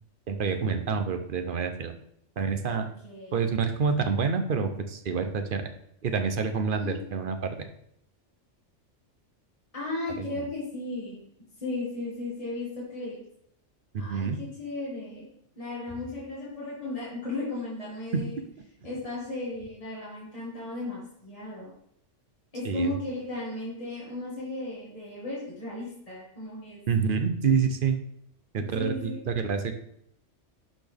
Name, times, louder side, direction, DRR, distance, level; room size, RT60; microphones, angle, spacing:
voice 1, 0.3-1.9 2.4-2.9 3.3-5.6 6.0-7.7 10.2-10.5 13.9-14.4 18.1-18.4 22.6-23.0 26.9-28.0 28.5-29.7, right 5 dB, 50° right, 7 dB, 0.8 m, -27 dB
voice 2, 2.7-3.3 6.7-7.0 9.7-11.2 11.6-13.2 14.0-15.3 15.6-18.4 18.8-21.7 22.5-26.8 28.7-29.2, left 2 dB, 30° left, -7 dB, 2.1 m, -35 dB
12.0 x 4.2 x 3.4 m, 0.73 s
omnidirectional pair, 1.2 m